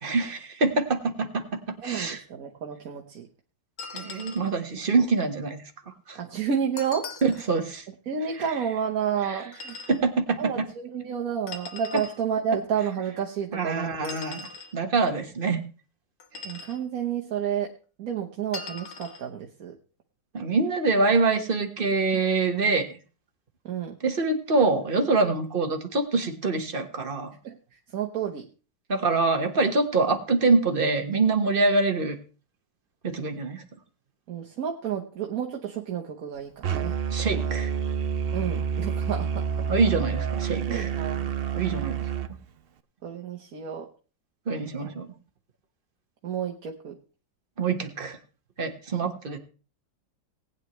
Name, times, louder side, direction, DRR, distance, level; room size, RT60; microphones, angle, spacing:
voice 1, 0.0-2.2 3.9-6.2 7.2-7.8 9.2-9.4 9.9-10.7 13.5-14.4 14.7-15.7 20.3-23.0 24.0-27.3 28.9-32.2 33.0-33.6 37.1-37.7 39.7-40.9 41.5-42.1 44.5-45.1 47.6-48.2 48.6-49.4, right 3 dB, 35° right, 5 dB, 1.5 m, -25 dB
voice 2, 1.8-3.3 6.1-7.1 8.1-9.8 10.4-14.2 16.4-17.7 18.0-19.8 23.6-24.0 27.4-27.6 27.9-28.5 34.3-36.9 38.3-39.7 40.7-41.3 43.0-43.9 44.7-44.9 46.2-47.0, right 7 dB, 60° right, 1 dB, 1.5 m, -30 dB
Glass Drop Knock On Table Floor Pack, 3.8-4.5 6.8-7.5 9.5-10.0 11.5-12.2 14.0-14.7 16.2-16.8 18.5-19.2, left 4 dB, 90° left, 2.1 m, -40 dB
Musical instrument, 36.6-42.3, right 7 dB, 85° right, 0.5 m, -28 dB
19.0 x 9.2 x 3.1 m, 0.35 s
omnidirectional pair, 1.8 m